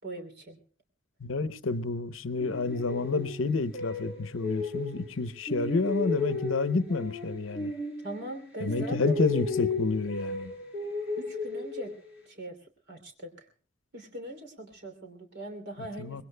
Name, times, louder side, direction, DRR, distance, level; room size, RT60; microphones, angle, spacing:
voice 1, 0.0-0.6 8.0-9.4 11.2-11.9 12.2-12.6 12.9-13.5 13.9-16.2, right 1 dB, 60° right, 3.0 m, -40 dB
voice 2, 1.2-7.7 8.6-10.5 16.0-16.2, left 3 dB, 70° left, 0.7 m, -29 dB
sound 1, 2.4-5.2 5.5-8.4 8.7-12.2, left 3 dB, 5° right, 6.5 m, -34 dB
24.0 x 20.5 x 2.2 m
head